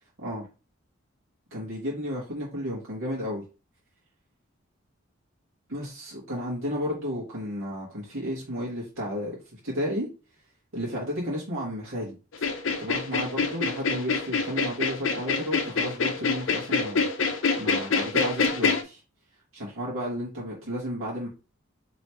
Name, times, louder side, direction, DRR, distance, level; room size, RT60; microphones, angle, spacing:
voice 1, 1.5-3.4 5.7-10.1 10.7-12.4 12.8-17.1 17.6-19.0 19.5-21.3, equal, 85° right, -5 dB, 1.4 m, -33 dB
sound 1, 12.3-18.8, left 4 dB, 70° left, 0.6 m, -26 dB
3.0 x 3.0 x 4.4 m, 0.32 s
head